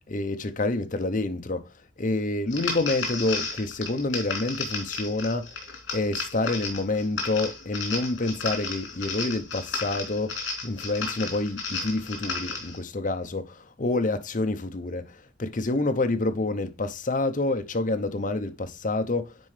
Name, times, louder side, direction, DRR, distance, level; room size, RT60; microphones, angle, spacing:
voice 1, 0.1-1.7 2.0-5.5 5.9-19.4, left 2 dB, 40° left, 0.7 m, -28 dB
sound 1, 2.5-12.8, left 4 dB, 70° left, 3.1 m, -33 dB
9.5 x 4.4 x 3.2 m
head